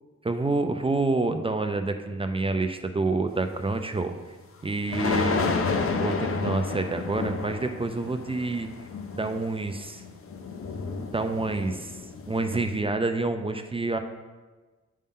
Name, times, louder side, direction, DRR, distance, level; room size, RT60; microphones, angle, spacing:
voice 1, 0.2-4.1 4.6-5.5 5.9-8.7 9.1-10.0 11.1-12.0 12.3-14.0, right 3 dB, 20° right, 6 dB, 0.3 m, -28 dB
sound 1, 3.5-3.7 4.9-12.8, left 4 dB, 50° left, 0.6 m, -31 dB
8.5 x 5.5 x 3.6 m, 1.3 s
wide cardioid pair, 160°, 29 cm